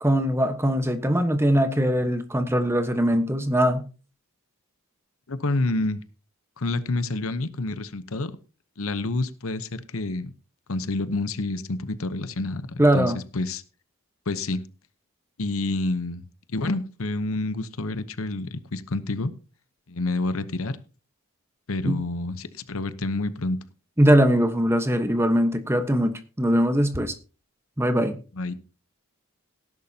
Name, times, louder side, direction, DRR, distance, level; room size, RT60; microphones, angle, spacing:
voice 1, 0.0-3.8 12.8-13.2 21.8-22.0 24.0-27.1 27.8-28.2, equal, 10° right, 1.2 m, -21 dB
voice 2, 5.3-6.0 6.6-8.3 8.8-10.3 10.7-13.6 14.3-14.6 15.4-16.2 16.5-19.3 19.9-20.8 21.7-23.6 28.4-28.6, left 2 dB, 70° left, 0.9 m, -28 dB
18.0 x 11.0 x 2.8 m
head